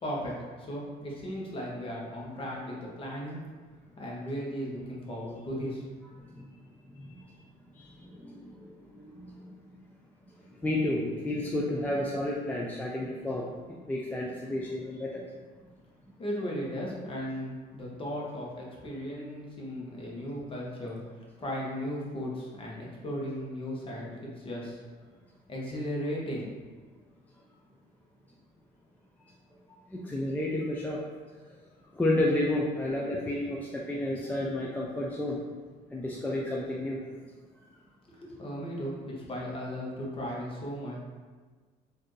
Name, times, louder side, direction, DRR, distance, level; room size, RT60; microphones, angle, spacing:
voice 1, 0.0-3.4 4.0-5.8 16.2-21.0 21.4-24.8 25.5-26.5 38.1-41.0, equal, 30° left, -3 dB, 1.0 m, -36 dB
voice 2, 7.8-9.5 10.6-15.2 29.9-31.0 31.9-35.4 35.9-37.0, left 1 dB, 10° left, -4 dB, 0.4 m, -31 dB
4.2 x 2.6 x 3.1 m, 1.4 s
cardioid pair, 110°, 17 cm